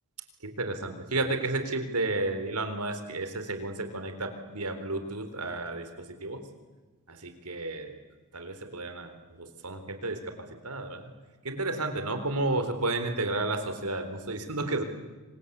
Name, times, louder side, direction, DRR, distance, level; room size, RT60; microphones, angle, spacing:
voice 1, 0.4-6.4 7.1-7.9 8.3-9.1 9.4-10.3 10.6-11.1 11.4-14.8, right 2 dB, 90° right, 8 dB, 3.9 m, -32 dB
27.0 x 25.5 x 8.3 m, 1.3 s
head